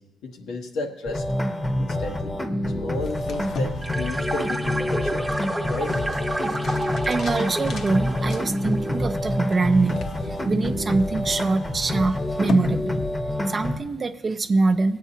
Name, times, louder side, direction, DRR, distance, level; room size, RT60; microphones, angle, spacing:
voice 1, 0.2-1.2 1.7-2.4 2.7-5.3 5.7-6.0, left 3 dB, 90° left, 1 dB, 1.1 m, -33 dB
sound 1, 1.1-13.8, left 1 dB, 15° left, 0.8 m, -27 dB
sound 2, 3.0-13.5, left 3 dB, 60° left, 0.8 m, -37 dB
sound 3, 3.8-9.6, right 1 dB, 10° right, 0.8 m, -31 dB
voice 2, 7.1-13.0 13.5-15.0, right 3 dB, 35° right, 8 dB, 0.4 m, -24 dB
18.0 x 8.2 x 2.8 m, 1.0 s
cardioid pair, 90°, 0 cm